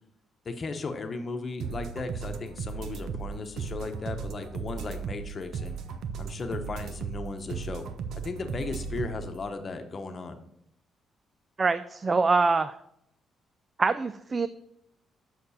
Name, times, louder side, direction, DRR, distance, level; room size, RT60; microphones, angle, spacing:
voice 1, 0.4-5.8 6.2-7.9 8.1-10.4, left 3 dB, 40° left, 7 dB, 1.0 m, -36 dB
sound 1, 1.6-9.3, right 6 dB, 75° right, 0.7 m, -36 dB
voice 2, 11.6-12.8 13.8-14.5, right 4 dB, 30° right, 13 dB, 0.3 m, -24 dB
6.7 x 6.5 x 4.2 m, 0.76 s
cardioid pair, 90°, 0 cm